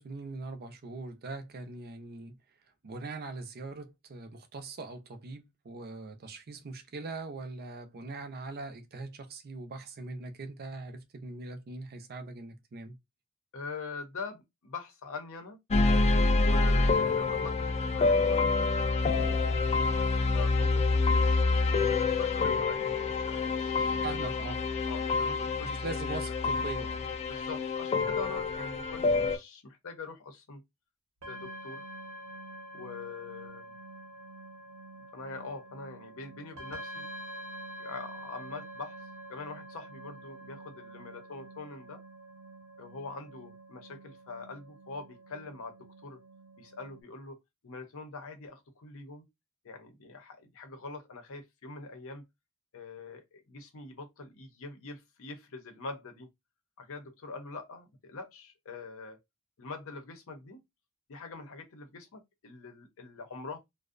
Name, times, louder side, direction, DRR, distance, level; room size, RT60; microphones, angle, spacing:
voice 1, 0.0-2.3 2.8-13.0 24.0-24.6 25.6-27.0, right 3 dB, 45° right, 0.5 m, -41 dB
voice 2, 13.5-15.6 16.4-18.7 19.5-24.3 24.9-25.8 26.1-26.3 27.2-30.6 31.3-31.8 32.7-33.7 35.1-37.0 37.8-39.0 39.3-42.0 42.8-46.2 46.6-47.4 47.6-49.3 49.6-52.3 52.7-56.3 56.8-59.2 59.6-60.6 61.1-63.6, left 3 dB, 65° left, 0.6 m, -44 dB
sound 1, 15.7-29.4, left 3 dB, 30° left, 0.3 m, -27 dB
sound 2, 31.2-47.0, right 1 dB, 80° right, 0.9 m, -47 dB
2.5 x 2.0 x 2.4 m
head